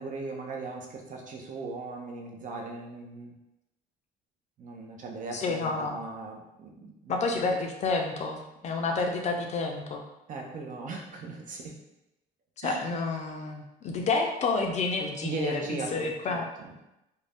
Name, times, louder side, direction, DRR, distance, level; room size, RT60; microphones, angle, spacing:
voice 1, 0.0-3.3 4.6-7.2 10.3-11.8 12.6-12.8 15.2-16.7, right 3 dB, 50° right, 1 dB, 0.6 m, -38 dB
voice 2, 5.3-6.0 7.1-10.0 12.6-16.5, left 3 dB, 45° left, 3 dB, 0.4 m, -29 dB
2.6 x 2.1 x 3.3 m, 0.91 s
cardioid pair, 110°, 17 cm